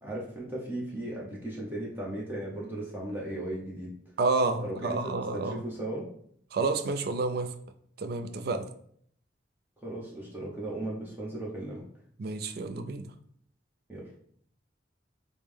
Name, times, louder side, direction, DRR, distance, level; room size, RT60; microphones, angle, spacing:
voice 1, 0.0-3.9 4.6-5.0 5.3-6.1 9.8-11.9 13.9-14.1, right 1 dB, 10° right, 0.7 m, -36 dB
voice 2, 4.2-5.6 6.5-7.5 8.0-8.7 12.2-13.1, right 3 dB, 55° right, 0.4 m, -29 dB
5.2 x 2.1 x 3.3 m
head